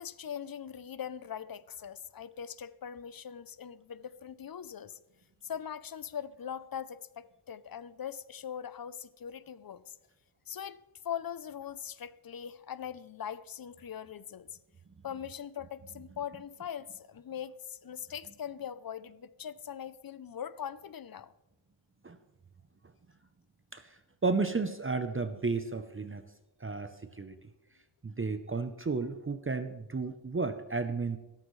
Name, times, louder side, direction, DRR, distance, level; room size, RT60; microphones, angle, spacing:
voice 1, 0.0-5.0 5.4-10.0 10.5-14.5 15.0-21.3, left 8 dB, 50° left, 0.6 m, -41 dB
voice 2, 23.7-26.2 26.6-27.4 28.0-31.2, right 4 dB, 30° right, 0.6 m, -33 dB
15.5 x 13.5 x 3.2 m
wide cardioid pair, 95°, 46 cm